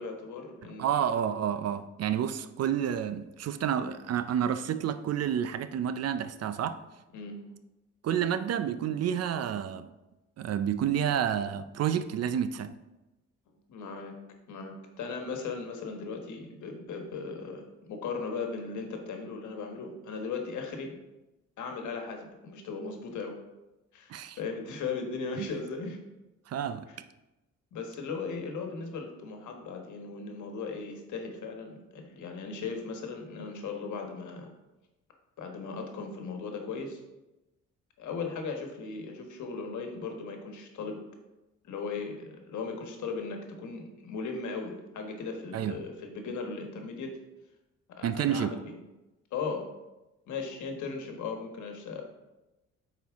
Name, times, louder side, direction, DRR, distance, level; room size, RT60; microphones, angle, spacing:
voice 1, 0.0-0.9 7.1-7.4 13.5-14.2 14.5-21.0 21.6-23.4 23.9-26.0 27.7-34.5 35.4-37.0 38.0-41.0 41.6-47.2 47.9-48.7 49.3-49.7 50.3-52.0, left 4 dB, 75° left, 1.3 m, -37 dB
voice 2, 0.8-6.8 8.0-9.9 10.4-12.7 24.1-24.4 25.4-25.5 26.5-26.8 45.5-45.8 48.0-48.6, right 9 dB, 55° right, 0.5 m, -29 dB
8.2 x 4.6 x 3.5 m
cardioid pair, 90°, 30 cm